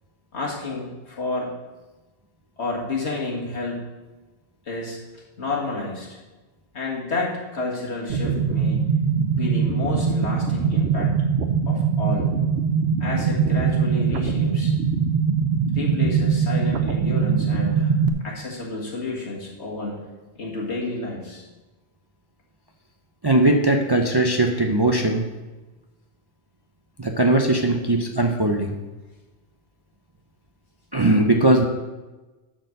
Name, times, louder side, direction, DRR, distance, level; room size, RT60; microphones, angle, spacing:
voice 1, 0.3-1.5 2.6-3.8 4.7-5.0 5.4-6.2 6.7-8.9 9.4-11.2 11.7-12.3 13.0-14.7 15.7-18.0 18.2-20.0 20.4-21.4, left 2 dB, 75° left, -3 dB, 2.1 m, -30 dB
sound 1, 8.1-18.1, right 6 dB, 70° right, 0.9 m, -22 dB
voice 2, 23.2-25.3 27.0-28.8 30.9-31.6, right 2 dB, 30° right, 3 dB, 0.5 m, -19 dB
10.0 x 4.6 x 6.4 m, 1.2 s
omnidirectional pair, 1.2 m